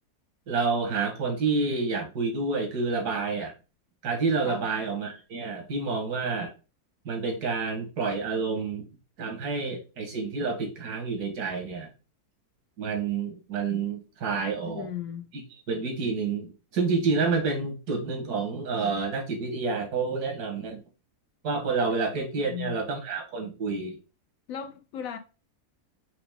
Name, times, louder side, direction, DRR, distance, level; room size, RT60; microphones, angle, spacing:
voice 1, 0.5-3.5 4.0-6.5 7.1-8.9 9.2-11.9 12.8-14.9 15.7-20.8 21.4-24.0, right 4 dB, 85° right, 1.9 m, -29 dB
voice 2, 14.7-15.3 22.4-22.8 24.5-25.2, left 9 dB, 65° left, 1.0 m, -36 dB
4.9 x 3.0 x 3.5 m
omnidirectional pair, 1.7 m